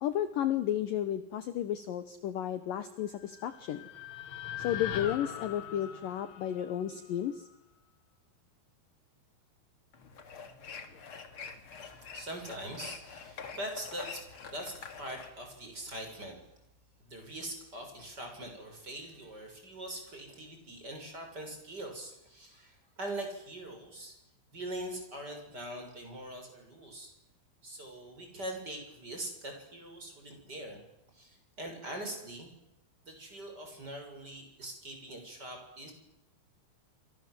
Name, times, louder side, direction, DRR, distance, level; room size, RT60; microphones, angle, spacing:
voice 1, 0.0-3.8 4.6-7.4, left 11 dB, 65° left, 11 dB, 2.3 m, -33 dB
sound 1, 3.2-7.4, left 10 dB, 90° left, 4.1 m, -41 dB
sound 2, 9.9-15.3, left 5 dB, 40° left, 2.2 m, -46 dB
voice 2, 12.1-16.4 17.0-24.1 24.5-27.1 27.6-30.8 31.1-32.5 33.0-35.9, right 1 dB, 20° right, 3 dB, 6.8 m, -42 dB
28.0 x 27.0 x 7.8 m, 0.87 s
omnidirectional pair, 5.1 m